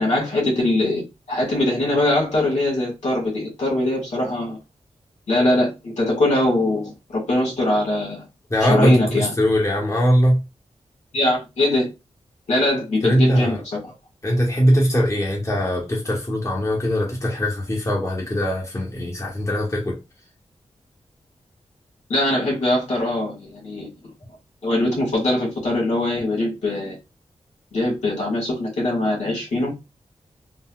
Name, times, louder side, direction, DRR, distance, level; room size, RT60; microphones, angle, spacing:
voice 1, 0.0-4.6 5.3-8.2 8.7-9.3 11.1-11.9 12.5-13.6 13.8-13.9 22.1-23.9 24.6-27.0 27.7-29.7, left 1 dB, 90° left, 1.8 m, -22 dB
voice 2, 8.5-10.4 13.0-13.6 14.2-20.0, equal, 25° left, 1.1 m, -20 dB
3.9 x 2.2 x 2.3 m
wide cardioid pair, 75°, 12 cm